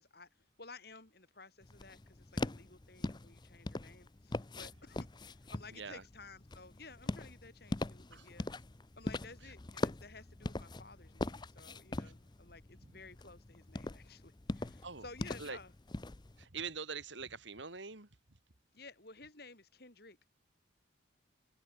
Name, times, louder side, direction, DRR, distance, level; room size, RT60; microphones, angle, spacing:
voice 1, 0.0-8.5 9.0-15.7 18.7-20.3, left 3 dB, 55° left, 4.3 m, -55 dB
sound 1, 1.6-16.4, left 2 dB, 20° left, 0.6 m, -42 dB
voice 2, 5.7-6.0 8.1-8.3 12.0-12.1 14.6-15.1 15.4-15.6 16.4-18.1, right 5 dB, 70° right, 2.4 m, -44 dB
head